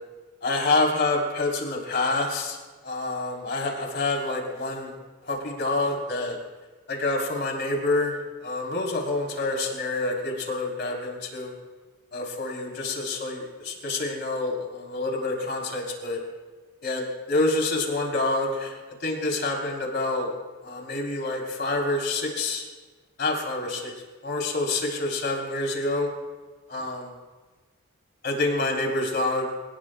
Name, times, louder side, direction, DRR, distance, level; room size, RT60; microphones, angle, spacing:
voice 1, 0.4-2.6 2.8-4.9 5.3-6.4 6.9-11.5 12.1-16.2 16.8-20.3 20.6-22.6 23.2-23.9 24.2-26.1 26.7-27.1 28.2-29.5, left 2 dB, 45° left, 1 dB, 3.3 m, -27 dB
27.0 x 18.5 x 2.2 m, 1.3 s
head